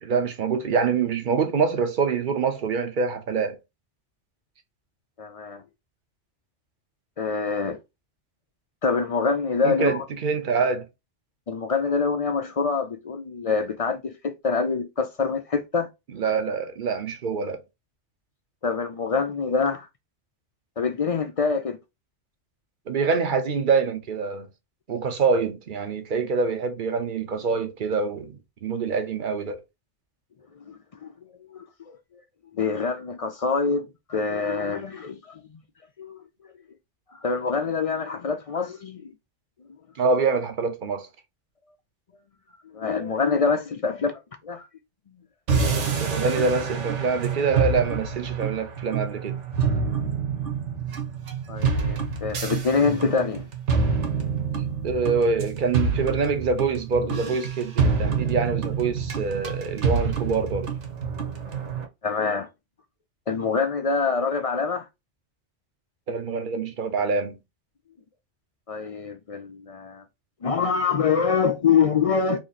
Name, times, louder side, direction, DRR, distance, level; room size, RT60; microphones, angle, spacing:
voice 1, 0.0-3.6 9.6-10.9 16.1-17.6 22.9-24.5 24.9-29.6 40.0-41.1 46.0-49.4 54.8-60.7 66.1-67.4, right 5 dB, 50° right, 0.8 m, -25 dB
voice 2, 5.2-5.6 7.2-7.8 8.8-10.0 11.5-15.9 18.6-19.9 20.8-21.8 30.7-31.1 31.5-31.7 32.5-35.6 36.0-36.2 37.1-39.1 42.7-44.7 51.5-53.5 57.0-57.1 62.0-62.5 63.3-64.9 68.7-70.0 70.4-72.4, left 5 dB, 60° left, 0.3 m, -25 dB
sound 1, 45.5-61.8, right 5 dB, 75° right, 1.2 m, -27 dB
3.0 x 2.8 x 3.9 m
omnidirectional pair, 1.2 m